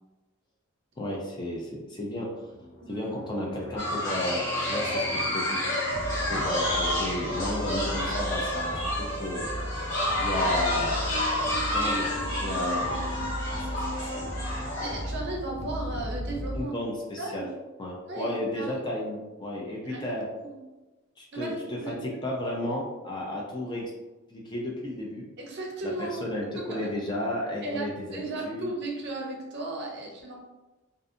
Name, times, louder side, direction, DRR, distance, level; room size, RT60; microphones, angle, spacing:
voice 1, 1.0-2.5 2.9-5.6 6.2-9.4 10.2-11.0 11.7-13.1 14.1-14.3 16.5-17.4 17.8-20.3 21.2-23.9 24.3-25.3 25.8-25.9 26.2-28.7, left 1 dB, 20° left, -3 dB, 0.4 m, -33 dB
sound 1, 1.5-16.6, equal, 90° left, 0.9 m, -36 dB
voice 2, 2.8-3.1 14.8-16.8 17.2-17.5 18.1-18.7 19.7-20.1 20.4-20.6 21.3-22.2 25.4-26.2 26.6-26.9 27.6-30.4, right 2 dB, 50° right, 0 dB, 0.6 m, -35 dB
sound 2, 3.8-15.1, left 1 dB, 60° left, 1.4 m, -30 dB
2.6 x 2.4 x 2.5 m, 1.1 s
head